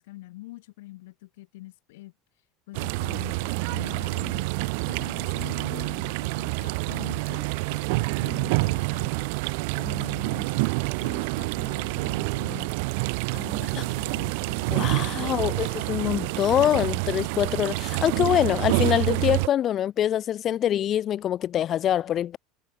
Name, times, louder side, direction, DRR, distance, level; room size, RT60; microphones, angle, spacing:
voice 1, 0.0-2.1 2.7-4.5 4.9-9.3 9.7-10.7 11.0-12.9 13.3-15.3 16.0-16.2, left 19 dB, 90° left, 3.5 m, -43 dB
sound 1, 2.7-19.5, right 30 dB, 70° right, 0.4 m, -27 dB
voice 2, 14.7-22.4, left 11 dB, 30° left, 1.2 m, -24 dB
supercardioid pair, 155°, 0 cm